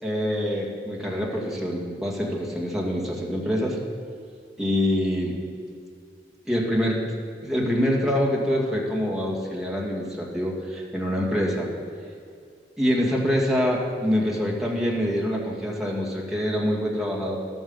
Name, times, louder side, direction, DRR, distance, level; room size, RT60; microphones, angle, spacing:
voice 1, 0.0-3.8 4.6-5.4 6.4-7.0 7.4-11.7 12.8-17.4, equal, ahead, -4 dB, 2.2 m, -25 dB
12.5 x 9.3 x 7.2 m, 2.4 s
head